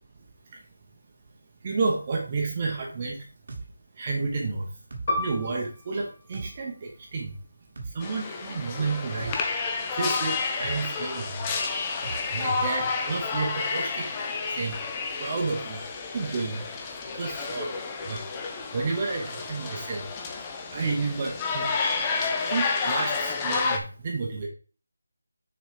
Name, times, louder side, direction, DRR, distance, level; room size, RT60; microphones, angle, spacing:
voice 1, 1.6-3.2 4.0-4.7 5.2-7.3 7.9-11.5 12.3-14.1 14.5-14.8 15.2-15.8 16.1-16.7 17.1-17.7 18.1-18.3 18.7-20.0 20.7-21.7 22.5-24.5, right 4 dB, 20° right, 0 dB, 0.9 m, -31 dB
sound 1, 3.5-3.7 4.9-5.1 6.3-6.5 7.8-8.0 9.2-9.4 10.6-10.8 12.0-12.2, right 3 dB, 35° right, 1.2 m, -37 dB
Piano, 5.1-10.1 10.5-10.6 11.4-11.8, left 1 dB, 25° left, 1.0 m, -36 dB
sound 2, 8.0-23.8, left 4 dB, 10° left, 0.5 m, -30 dB
6.4 x 4.0 x 5.0 m, 0.37 s
figure-of-eight pair, 175°, 0 cm